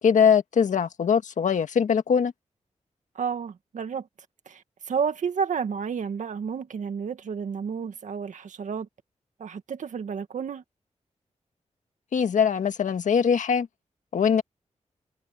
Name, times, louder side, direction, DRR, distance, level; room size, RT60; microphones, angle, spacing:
voice 1, 0.0-2.3 12.1-13.7 14.1-14.4, left 7 dB, 90° left, 1.6 m, -22 dB
voice 2, 3.2-4.1 4.5-8.9 9.4-10.6, right 6 dB, 85° right, 2.0 m, -31 dB
wide cardioid pair, 175°, 13 cm